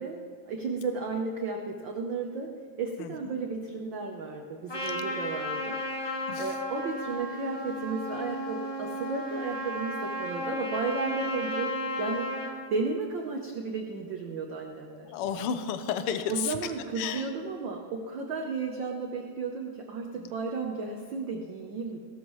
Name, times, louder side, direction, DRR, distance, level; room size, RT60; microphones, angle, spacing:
voice 1, 0.0-2.5 2.8-6.0 6.4-11.7 12.0-12.3 12.7-15.1 16.3-22.0, right 4 dB, 90° right, 2 dB, 1.0 m, -33 dB
voice 2, 3.0-3.3 6.3-6.5 15.1-16.6 17.0-17.3 20.2-20.3, left 8 dB, 75° left, 9 dB, 1.4 m, -32 dB
Trumpet, 4.7-12.5, left 1 dB, 35° left, 0.3 m, -34 dB
17.5 x 13.0 x 3.1 m, 2.1 s
omnidirectional pair, 3.4 m